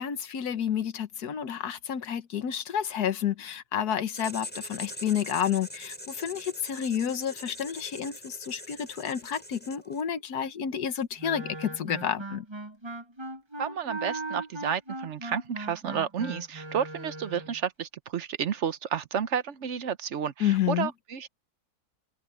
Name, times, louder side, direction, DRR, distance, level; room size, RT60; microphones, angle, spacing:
voice 1, 0.0-12.4 20.4-20.9, left 9 dB, 85° left, 1.6 m, -30 dB
Writing, 4.1-10.1, left 1 dB, 5° left, 6.1 m, -43 dB
Wind instrument woodwind instrument, 11.2-17.6, right 2 dB, 20° right, 1.1 m, -38 dB
voice 2, 13.6-21.3, right 8 dB, 55° right, 1.0 m, -31 dB
omnidirectional pair, 1.6 m